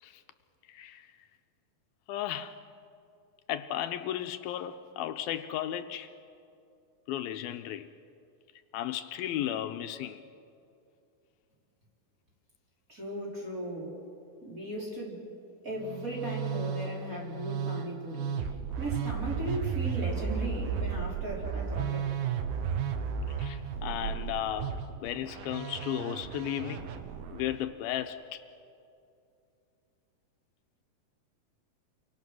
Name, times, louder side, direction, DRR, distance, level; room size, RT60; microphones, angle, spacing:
voice 1, 0.7-1.1 2.1-2.6 3.5-6.1 7.1-7.9 8.7-10.2 23.3-24.7 25.0-26.9 27.3-28.4, left 11 dB, 80° left, 8 dB, 2.5 m, -35 dB
voice 2, 12.9-14.0 14.4-15.3 15.6-22.1, right 1 dB, 20° right, -4 dB, 4.6 m, -37 dB
Musical instrument, 15.8-27.6, right 7 dB, 90° right, 3.1 m, -34 dB
29.5 x 24.0 x 6.2 m, 2.6 s
omnidirectional pair, 4.4 m